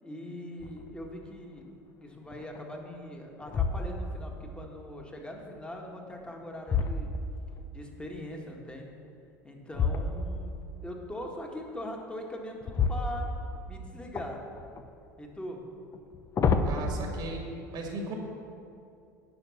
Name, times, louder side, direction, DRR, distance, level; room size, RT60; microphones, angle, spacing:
voice 1, 0.0-7.1 7.7-8.9 9.4-13.3 13.7-14.4 15.2-15.6, left 1 dB, 10° left, 1 dB, 1.7 m, -41 dB
sound 1, 0.6-1.0 1.6-1.7 2.3-2.9 3.4-4.3 6.0-7.7 9.7-10.5 12.6-13.7 14.1-14.9 15.9-16.8, left 4 dB, 35° left, 0.7 m, -30 dB
voice 2, 16.6-17.4 17.7-18.1, right 2 dB, 50° right, 1 dB, 1.8 m, -36 dB
10.5 x 5.3 x 7.2 m, 2.5 s
hypercardioid pair, 80°, 10 cm